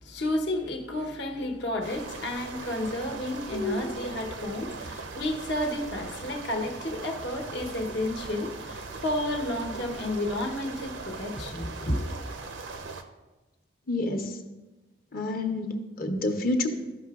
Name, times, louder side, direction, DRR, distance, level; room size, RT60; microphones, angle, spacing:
voice 1, 0.0-12.1, left 1 dB, 70° left, 1.0 m, -31 dB
sound 1, 1.8-13.0, right 4 dB, 90° right, 0.7 m, -40 dB
voice 2, 13.9-14.4 15.1-16.7, left 2 dB, 50° left, 0.8 m, -28 dB
13.5 x 5.8 x 2.4 m
head